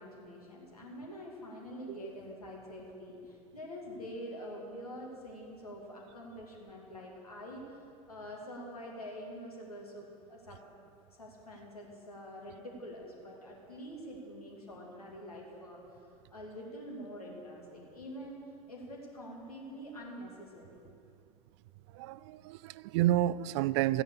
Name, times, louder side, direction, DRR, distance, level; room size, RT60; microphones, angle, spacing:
voice 1, 0.0-10.6 11.1-15.8 16.3-18.4 18.7-20.8, equal, 80° left, -2 dB, 2.7 m, -46 dB
voice 2, 21.9-24.0, right 14 dB, 50° right, 19 dB, 0.4 m, -30 dB
14.5 x 9.9 x 6.8 m, 2.5 s
figure-of-eight pair, 80°, 19 cm